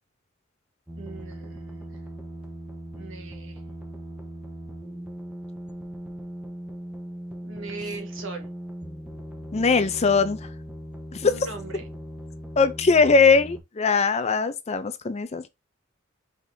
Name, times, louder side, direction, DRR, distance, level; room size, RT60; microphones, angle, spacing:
sound 1, 0.9-13.6, equal, 5° right, 1.0 m, -39 dB
voice 1, 1.0-2.0 2.9-3.6 7.4-8.5 11.2-11.9, right 3 dB, 65° right, 1.5 m, -39 dB
voice 2, 9.5-10.4 11.1-11.3 12.6-15.5, left 4 dB, 30° left, 0.5 m, -20 dB
5.0 x 3.9 x 2.7 m
head